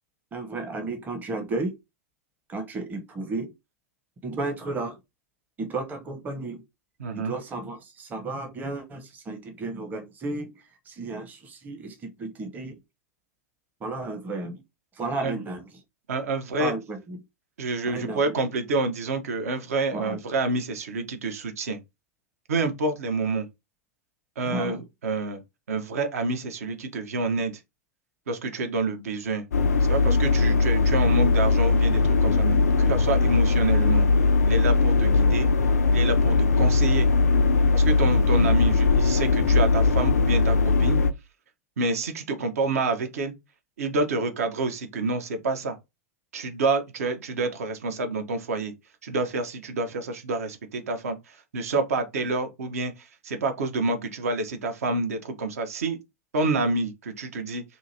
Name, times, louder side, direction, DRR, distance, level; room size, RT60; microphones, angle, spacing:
voice 1, 0.3-1.8 2.5-3.5 4.2-5.0 5.6-6.6 7.1-12.8 13.8-14.6 14.9-15.8 16.6-17.2 17.9-18.3 19.9-20.2 24.4-24.8 38.4-38.5, right 3 dB, 20° right, 0.7 m, -33 dB
voice 2, 7.0-7.3 15.2-15.4 16.1-16.7 17.6-21.8 22.5-23.5 24.4-25.4 25.7-27.5 28.3-29.5 29.8-34.1 34.4-35.5 35.9-37.1 37.7-41.0 41.8-43.3 43.8-45.8 46.3-48.7 49.0-56.0 56.3-57.6, right 3 dB, 70° right, 0.7 m, -28 dB
sound 1, 29.5-41.1, left 3 dB, 80° left, 0.3 m, -20 dB
2.8 x 2.5 x 2.7 m
figure-of-eight pair, 95°, 8 cm